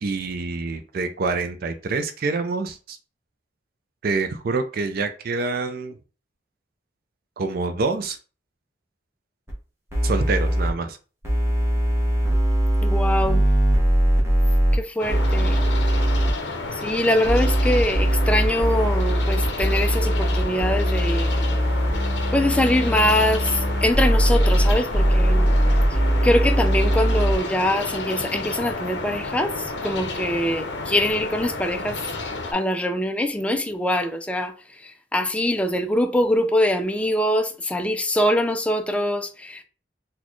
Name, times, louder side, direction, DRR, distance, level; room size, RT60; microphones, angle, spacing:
voice 1, 0.0-3.0 4.0-6.0 7.4-8.2 10.0-11.0, right 3 dB, 55° right, 0.4 m, -26 dB
sound 1, 9.5-9.6 9.9-10.7 11.2-14.8 15.1-16.3 17.2-27.3, equal, 15° right, 1.0 m, -20 dB
voice 2, 12.8-13.4 14.7-15.6 16.8-21.4 22.3-23.5 23.8-25.5 26.2-29.5 29.8-32.0 32.5-34.5 35.1-39.6, left 1 dB, 5° left, 0.4 m, -23 dB
sound 2, 15.0-32.5, left 3 dB, 70° left, 0.7 m, -31 dB
4.1 x 2.2 x 3.0 m
head